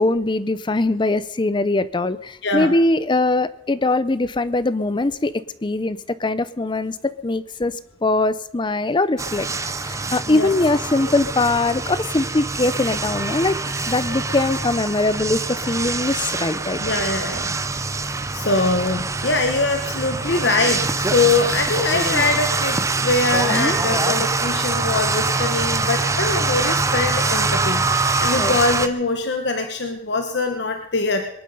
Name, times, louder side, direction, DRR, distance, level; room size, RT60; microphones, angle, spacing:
voice 1, 0.0-7.7 8.0-13.6 13.9-16.8 23.5-23.8 28.4-28.6, left 2 dB, 25° left, 16 dB, 0.5 m, -22 dB
voice 2, 2.4-2.7 10.3-10.5 16.8-18.0 18.3-31.3, left 3 dB, 65° left, 6 dB, 1.1 m, -23 dB
sound 1, 9.2-28.9, right 3 dB, 15° right, 0.7 m, -24 dB
22.0 x 11.0 x 5.5 m, 0.79 s
head